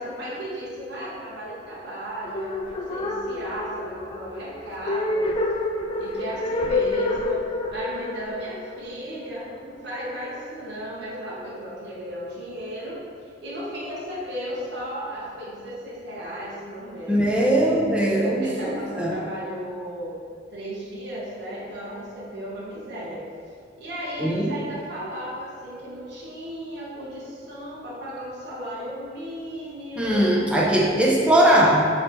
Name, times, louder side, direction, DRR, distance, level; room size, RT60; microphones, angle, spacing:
voice 1, 0.0-5.3 6.0-7.4 7.7-17.3 18.2-20.2 20.5-23.2 23.8-30.3, equal, 60° right, -7 dB, 1.2 m, -35 dB
sound 1, 2.2-9.4, left 2 dB, 30° left, 0.4 m, -28 dB
voice 2, 17.1-19.2 24.2-24.6 30.0-31.8, right 1 dB, 5° right, -4 dB, 0.8 m, -20 dB
6.4 x 3.2 x 4.5 m, 2.3 s
head